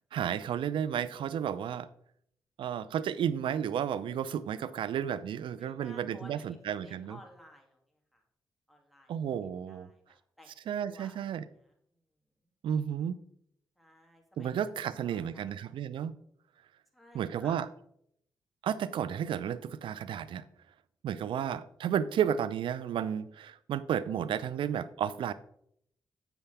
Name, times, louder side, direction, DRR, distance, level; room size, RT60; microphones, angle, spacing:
voice 1, 0.1-1.9 2.6-7.2 9.1-9.9 10.7-11.5 12.6-13.2 14.4-16.1 17.1-17.7 18.6-20.4 21.0-25.3, right 9 dB, 75° right, 0.4 m, -32 dB
voice 2, 5.6-7.8 8.1-8.2 8.7-9.1 9.7-11.4 13.8-14.5 14.8-15.5 16.9-17.7, left 1 dB, ahead, 2.4 m, -55 dB
8.0 x 7.0 x 3.4 m
supercardioid pair, 55°, 9 cm